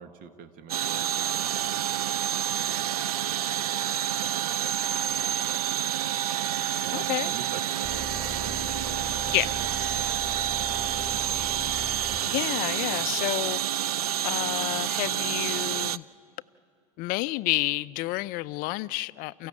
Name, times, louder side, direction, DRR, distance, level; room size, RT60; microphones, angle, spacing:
voice 1, 0.0-11.6, right 7 dB, 50° right, 11 dB, 1.5 m, -47 dB
sound 1, 0.7-16.0, right 11 dB, 80° right, 0.4 m, -28 dB
voice 2, 6.9-7.3 9.3-9.5 12.3-13.6 14.2-16.0 17.0-19.5, left 20 dB, 50° left, 18 dB, 0.5 m, -29 dB
sound 2, 7.8-13.1, left 2 dB, 5° right, 2.4 m, -41 dB
29.0 x 15.5 x 8.6 m, 2.7 s
hypercardioid pair, 80°, 19 cm